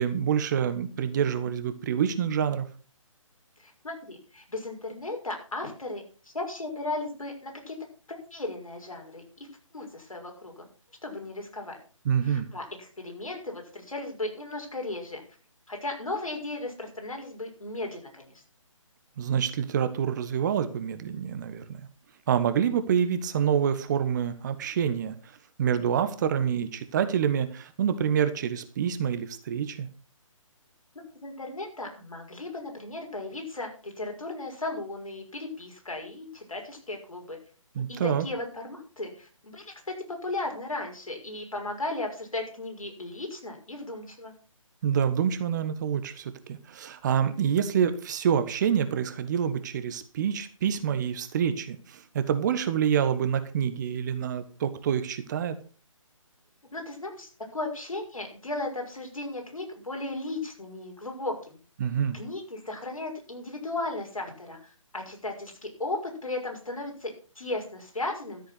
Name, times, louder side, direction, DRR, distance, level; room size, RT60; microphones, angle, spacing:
voice 1, 0.0-2.6 12.0-12.5 19.2-21.6 22.3-25.1 25.6-29.9 37.7-38.2 44.8-55.6 61.8-62.2, right 8 dB, 35° right, 11 dB, 1.4 m, -27 dB
voice 2, 3.6-7.8 8.1-9.2 9.7-10.7 11.0-11.8 12.2-15.2 15.7-18.3 30.9-37.4 37.9-44.3 56.7-61.6 62.1-68.4, left 2 dB, 85° left, 2 dB, 6.0 m, -36 dB
13.5 x 7.9 x 6.1 m, 0.37 s
figure-of-eight pair, 145°, 17 cm